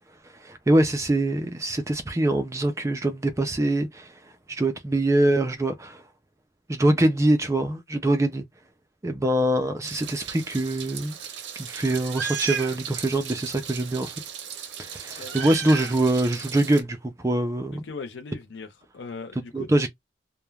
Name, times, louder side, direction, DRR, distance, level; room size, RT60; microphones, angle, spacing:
voice 1, 0.4-4.1 4.5-6.0 6.7-8.4 9.0-11.2 11.6-14.1 14.8-17.9 19.5-19.9, right 1 dB, 15° right, 0.3 m, -24 dB
Meow, 9.8-16.8, right 7 dB, 70° right, 0.5 m, -35 dB
voice 2, 17.7-19.9, left 4 dB, 70° left, 0.4 m, -39 dB
3.1 x 2.0 x 2.3 m
head